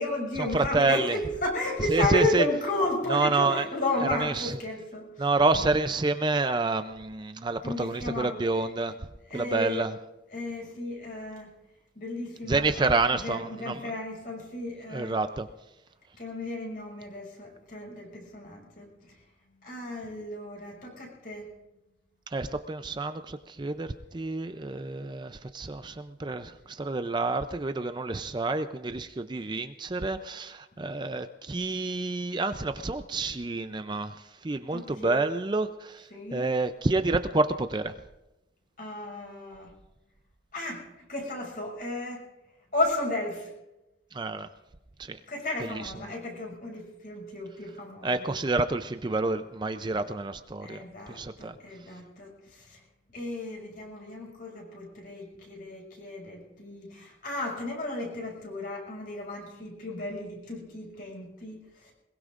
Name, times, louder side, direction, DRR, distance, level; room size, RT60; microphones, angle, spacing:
voice 1, 0.0-5.3 7.6-8.7 9.3-9.9 10.3-11.5 11.9-15.2 16.2-19.1 19.6-21.5 34.7-35.2 36.1-36.4 38.8-39.7 40.5-42.2 42.7-43.5 45.3-48.3 50.6-52.8 53.1-61.9, left 2 dB, 50° left, -1 dB, 5.9 m, -33 dB
voice 2, 0.5-1.2 1.9-2.5 3.1-3.7 4.0-4.5 5.2-8.9 9.3-10.0 12.5-13.9 14.9-15.5 22.3-37.9 44.1-44.5 45.0-45.2 45.6-45.7 48.0-51.5, right 3 dB, 25° right, 9 dB, 0.5 m, -28 dB
22.0 x 21.5 x 2.5 m, 0.97 s
head